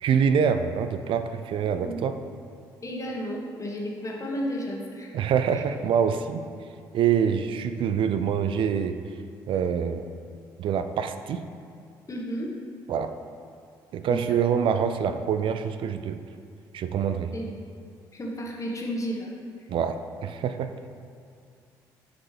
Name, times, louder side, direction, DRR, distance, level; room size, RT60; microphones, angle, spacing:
voice 1, 0.0-2.1 5.1-6.4 6.9-9.0 9.5-10.1 10.6-11.5 12.9-13.1 13.9-16.2 16.7-17.3 19.7-20.7, right 7 dB, 60° right, 9 dB, 0.3 m, -25 dB
voice 2, 1.7-2.1 2.8-5.1 5.4-5.6 12.1-12.5 14.1-14.4 17.3-17.5 18.1-19.3 19.6-19.7, equal, 35° left, -2 dB, 1.3 m, -33 dB
7.2 x 4.9 x 3.3 m, 2.3 s
hypercardioid pair, 55°, 10 cm